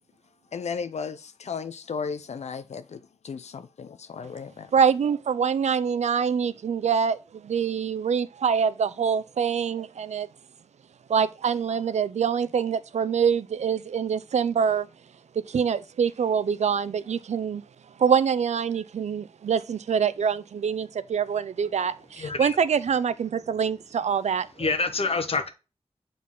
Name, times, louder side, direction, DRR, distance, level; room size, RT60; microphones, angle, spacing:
voice 1, 0.5-4.7, left 5 dB, 80° left, 0.6 m, -35 dB
voice 2, 4.7-10.3 11.1-14.9 15.5-17.6 18.0-24.7, right 7 dB, 85° right, 0.5 m, -25 dB
voice 3, 22.2-22.6 24.6-25.5, left 3 dB, 60° left, 1.1 m, -26 dB
7.5 x 4.0 x 3.8 m
wide cardioid pair, 80°, 11 cm